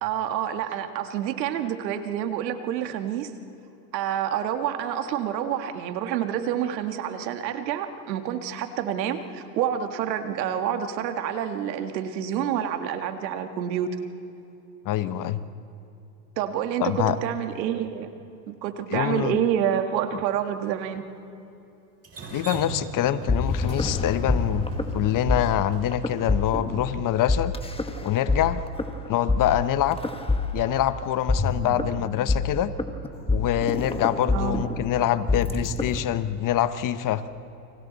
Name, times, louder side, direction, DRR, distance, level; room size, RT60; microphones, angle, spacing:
voice 1, 0.0-3.3 3.9-14.0 16.4-18.1 18.5-21.0 34.3-34.6, right 9 dB, 85° right, 8 dB, 1.8 m, -28 dB
voice 2, 14.8-15.4 16.8-17.2 18.9-19.4 22.3-27.5 28.0-28.6 29.1-30.0 30.5-32.7 33.3-37.2, left 11 dB, 40° left, 13 dB, 1.0 m, -25 dB
Drip, 22.0-26.2, right 3 dB, 30° right, 6.4 m, -39 dB
sound 1, 23.0-36.0, left 3 dB, 10° left, 1.5 m, -27 dB
30.0 x 24.5 x 4.1 m, 2.9 s
supercardioid pair, 110°, 50 cm